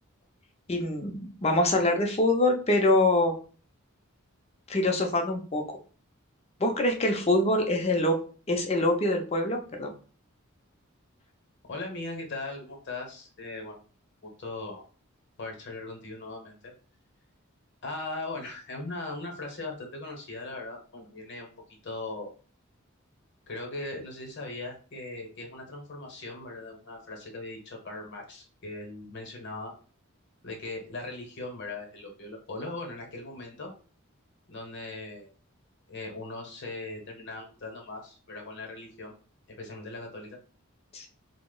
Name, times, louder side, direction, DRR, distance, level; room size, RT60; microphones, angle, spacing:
voice 1, 0.7-3.3 4.7-5.6 6.6-8.2 8.5-9.9 40.9-41.1, left 1 dB, 30° left, 3 dB, 0.5 m, -24 dB
voice 2, 11.7-13.8 14.2-14.8 15.4-16.7 17.8-21.5 21.8-22.3 23.5-29.7 30.4-33.7 34.5-35.3 35.9-39.1 39.6-40.4, left 2 dB, 55° left, 2 dB, 0.9 m, -39 dB
2.8 x 2.0 x 3.7 m, 0.38 s
head